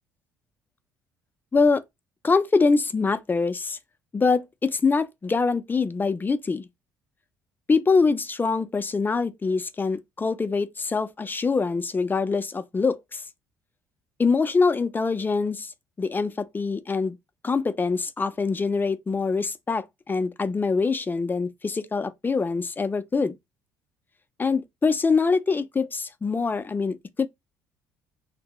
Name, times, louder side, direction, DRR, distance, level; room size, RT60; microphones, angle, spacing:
voice 1, 1.5-1.8 2.2-3.8 4.1-6.7 7.7-13.2 14.2-15.7 16.0-17.2 17.4-23.3 24.4-27.3, left 4 dB, 20° left, 0.4 m, -24 dB
2.1 x 2.0 x 3.6 m
hypercardioid pair, 55°, 9 cm